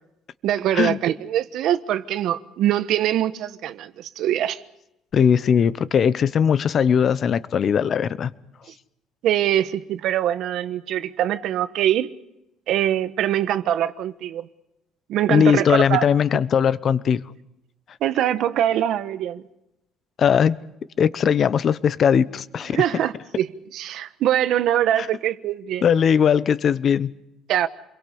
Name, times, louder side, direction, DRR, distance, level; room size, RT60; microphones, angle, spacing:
voice 1, 0.4-4.6 9.2-12.1 12.7-14.5 15.1-16.0 18.0-19.4 22.7-23.5 23.7-25.8 27.5-27.7, right 11 dB, 65° right, 1.2 m, -23 dB
voice 2, 5.1-8.3 15.3-17.2 20.2-20.5 21.0-22.8 25.0-25.1 25.8-27.1, left 7 dB, 45° left, 0.9 m, -19 dB
28.5 x 23.0 x 5.4 m
cardioid pair, 120°, 0 cm